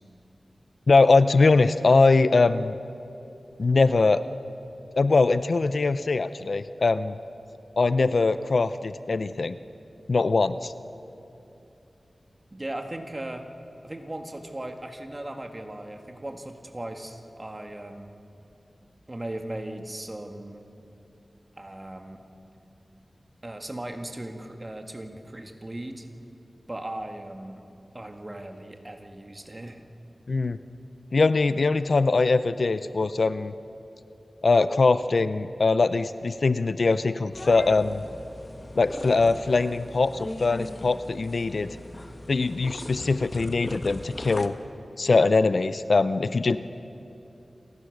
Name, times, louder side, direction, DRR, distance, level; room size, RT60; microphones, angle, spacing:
voice 1, 0.9-2.7 3.6-4.2 5.0-7.2 7.8-9.6 10.1-10.7 30.3-30.6 31.1-33.5 34.4-38.0 38.8-41.8 42.3-44.5 45.0-46.6, left 3 dB, 65° left, 13 dB, 0.5 m, -22 dB
voice 2, 12.5-13.5 13.8-18.1 19.1-20.6 21.6-22.2 23.4-26.1 26.7-27.6 27.9-29.8, right 1 dB, 30° right, 5 dB, 1.8 m, -37 dB
sound 1, 37.3-44.5, left 1 dB, 35° left, 1.2 m, -39 dB
28.5 x 15.0 x 6.6 m, 2.8 s
wide cardioid pair, 60°, 0 cm